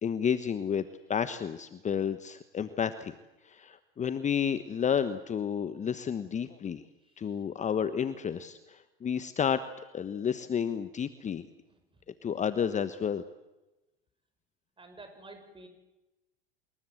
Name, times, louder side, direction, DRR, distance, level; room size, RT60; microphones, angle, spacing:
voice 1, 0.0-0.8 1.1-3.1 3.4-6.8 7.2-11.5 12.2-13.2, left 7 dB, 25° left, 12 dB, 1.2 m, -31 dB
voice 2, 7.0-7.4 11.7-12.0 14.8-15.7, right 2 dB, 15° right, 6 dB, 7.3 m, -51 dB
26.0 x 21.0 x 8.0 m, 1.0 s
hypercardioid pair, 90°, 29 cm